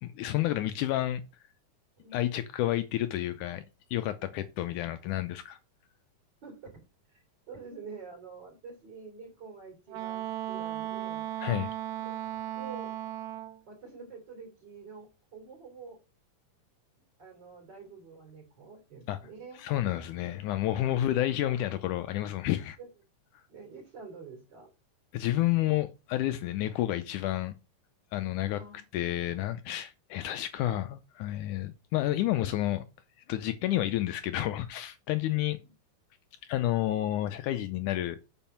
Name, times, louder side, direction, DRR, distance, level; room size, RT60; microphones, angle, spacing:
voice 1, 0.0-1.2 2.1-3.6 3.9-5.6 11.4-11.7 19.1-19.2 19.6-22.8 25.1-27.6 28.1-28.6 28.9-32.8 33.3-35.6 36.4-38.2, left 14 dB, 80° left, 2.0 m, -30 dB
voice 2, 2.0-2.3 6.4-6.7 7.1-7.2 7.5-11.3 12.0-12.1 12.5-12.9 13.7-16.0 17.2-19.6 20.7-21.1 21.5-21.6 22.8-22.9 23.5-24.7 28.6-28.8 35.4-35.7, right 4 dB, 30° right, 3.9 m, -47 dB
Wind instrument woodwind instrument, 9.9-13.6, right 13 dB, 80° right, 1.8 m, -36 dB
7.2 x 5.1 x 5.6 m
omnidirectional pair, 3.8 m